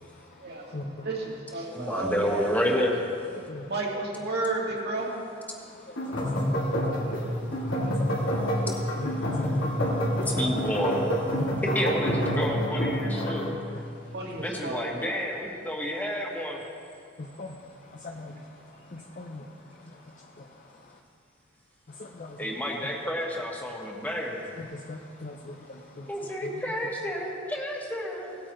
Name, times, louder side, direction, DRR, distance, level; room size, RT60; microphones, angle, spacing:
voice 1, 0.4-2.5 3.7-5.1 14.1-15.2, right 2 dB, 55° right, -2 dB, 1.9 m, -32 dB
voice 2, 1.7-3.0 10.2-11.1 11.7-13.4 14.4-16.6 22.4-24.4 26.1-28.4, equal, 10° left, -1 dB, 1.4 m, -30 dB
sound 1, 6.0-13.5, equal, 85° left, 2.7 m, -27 dB
voice 3, 18.9-19.4 24.9-25.5 26.4-26.5, left 2 dB, 40° left, 1 dB, 0.6 m, -37 dB
18.0 x 8.9 x 3.1 m, 2.4 s
head